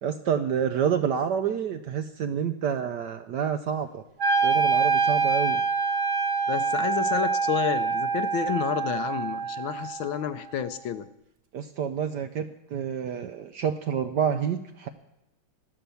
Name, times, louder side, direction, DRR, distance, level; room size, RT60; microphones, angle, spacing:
voice 1, 0.0-4.0 4.4-5.6 11.5-14.9, right 8 dB, 70° right, 8 dB, 1.0 m, -28 dB
Wind instrument woodwind instrument, 4.2-10.3, right 4 dB, 45° right, 1.1 m, -25 dB
voice 2, 6.5-11.1, left 9 dB, 70° left, 11 dB, 1.3 m, -30 dB
13.0 x 12.5 x 7.0 m, 0.87 s
omnidirectional pair, 2.4 m